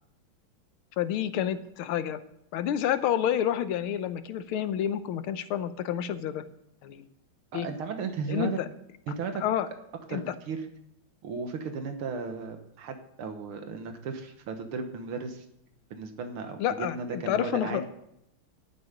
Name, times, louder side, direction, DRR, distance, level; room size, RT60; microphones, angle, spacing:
voice 1, 1.0-2.2 2.5-6.4 6.8-7.1 7.5-7.7 8.3-8.7 9.4-9.7 10.1-10.2 16.6-17.8, left 10 dB, 90° left, 11 dB, 1.7 m, -29 dB
voice 2, 7.5-8.6 9.1-9.4 10.1-10.6 11.2-15.5 15.9-17.9, right 5 dB, 90° right, 6 dB, 2.1 m, -35 dB
11.5 x 11.0 x 5.2 m, 0.78 s
omnidirectional pair, 2.3 m